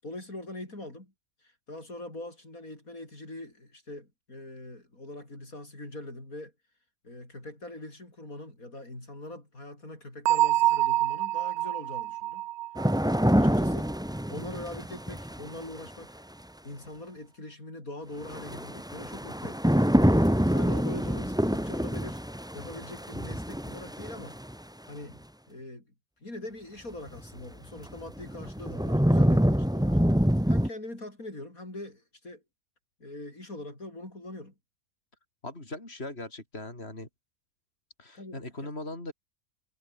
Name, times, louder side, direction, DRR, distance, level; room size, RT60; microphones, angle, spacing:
voice 1, 0.0-1.1 1.4-6.5 7.0-12.4 13.3-13.9 14.3-16.2 16.6-19.8 20.5-22.2 22.5-24.4 24.9-25.9 26.2-30.0 30.5-32.4 33.0-34.5 38.1-38.7, left 1 dB, 75° left, 8.2 m, -42 dB
Bell, 10.3-13.9, right 15 dB, 90° right, 1.0 m, -27 dB
sound 1, 12.7-15.9 18.2-24.5 27.2-27.3 27.9-30.7, equal, 5° right, 2.0 m, -26 dB
voice 2, 35.4-37.1 38.0-39.1, left 2 dB, 45° left, 6.1 m, -39 dB
omnidirectional pair, 1.5 m